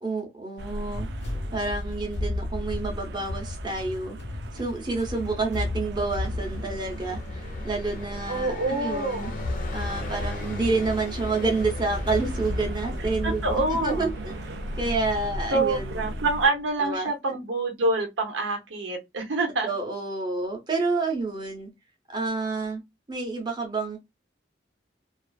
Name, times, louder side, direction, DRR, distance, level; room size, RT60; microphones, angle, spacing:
voice 1, 0.0-1.1 1.5-4.2 4.5-9.3 9.7-16.1 16.8-17.1 19.6-21.7 22.1-22.8 23.1-24.0, right 3 dB, 25° right, 0.6 m, -29 dB
sound 1, 0.6-16.5, equal, 60° right, 0.3 m, -38 dB
sound 2, 0.9-14.1, left 2 dB, 80° left, 0.8 m, -34 dB
Car passing by, 6.1-16.7, left 2 dB, 45° left, 0.6 m, -40 dB
voice 2, 8.3-9.5 13.2-14.1 15.5-19.7, right 2 dB, 80° right, 0.7 m, -26 dB
2.4 x 2.4 x 2.3 m
head